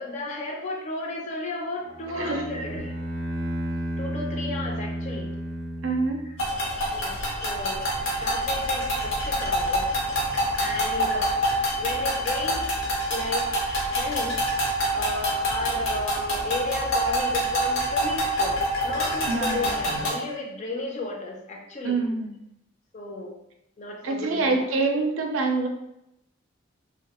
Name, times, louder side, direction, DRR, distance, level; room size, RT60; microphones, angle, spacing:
voice 1, 0.0-2.9 4.0-5.3 6.2-6.3 6.9-7.2 7.4-7.8 8.2-9.9 10.6-11.3 11.8-12.7 13.1-13.5 13.8-14.4 14.9-22.0 22.9-23.4 23.8-24.6 24.9-25.0, left 2 dB, 35° left, 1 dB, 0.4 m, -34 dB
Bowed string instrument, 1.8-6.6, right 1 dB, 20° right, 0.5 m, -32 dB
voice 2, 5.8-6.2 19.2-19.7 21.8-22.3 24.0-25.7, right 3 dB, 75° right, 3 dB, 0.4 m, -25 dB
sound 1, 6.4-20.1, equal, 80° left, 0.7 m, -26 dB
2.2 x 2.0 x 2.9 m, 0.83 s
head